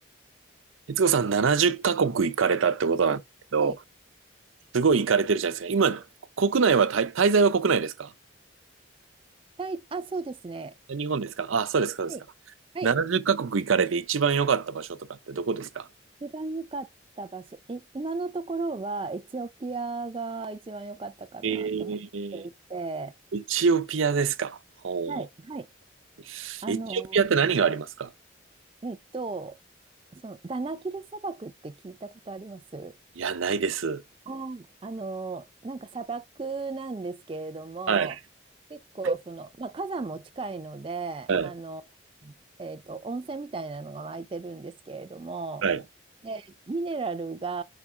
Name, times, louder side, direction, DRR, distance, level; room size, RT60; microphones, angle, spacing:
voice 1, 0.9-3.2 3.5-3.7 4.7-6.0 6.4-8.1 10.9-12.1 12.8-15.0 15.3-15.9 21.4-22.4 23.3-24.6 24.8-25.2 26.3-28.1 33.2-34.0 37.9-38.1 41.3-41.5 45.6-45.8, right 5 dB, 90° right, 0.6 m, -24 dB
voice 2, 9.6-10.7 12.1-12.2 12.7-12.9 16.2-16.9 17.2-22.0 22.3-23.1 25.1-25.7 26.6-27.2 28.8-29.6 30.1-32.9 34.3-38.2 38.7-41.8 42.2-42.3 42.6-45.7 46.2-47.6, right 3 dB, 25° right, 0.4 m, -35 dB
4.8 x 4.5 x 4.3 m
head